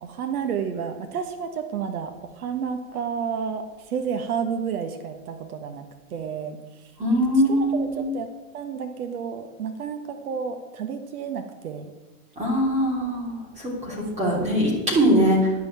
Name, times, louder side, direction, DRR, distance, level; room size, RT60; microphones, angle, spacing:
voice 1, 0.0-6.9 7.5-8.3 8.5-11.9 14.2-14.8, right 7 dB, 80° right, 6 dB, 1.5 m, -31 dB
voice 2, 7.0-8.0 12.4-15.5, equal, 15° right, -3 dB, 3.3 m, -22 dB
10.5 x 6.0 x 8.7 m, 1.2 s
hypercardioid pair, 140°, 44 cm